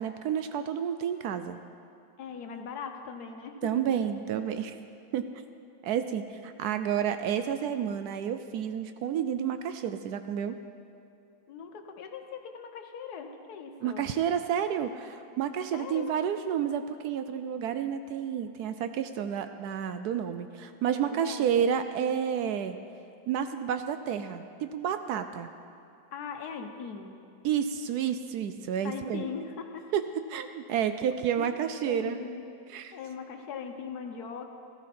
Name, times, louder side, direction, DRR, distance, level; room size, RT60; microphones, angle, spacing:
voice 1, 0.0-1.6 3.6-4.8 5.1-5.3 5.8-10.6 13.8-22.8 23.3-25.5 27.4-29.2 29.9-30.0 30.3-32.2 32.7-32.9, right 8 dB, 80° right, 9 dB, 0.8 m, -30 dB
voice 2, 2.2-4.0 11.5-14.1 15.7-16.1 20.9-21.5 26.1-27.2 28.8-29.9 31.4-31.5 31.8-32.4 32.9-34.5, left 6 dB, 60° left, 5 dB, 1.3 m, -40 dB
14.0 x 14.0 x 4.3 m, 2.6 s
omnidirectional pair, 2.1 m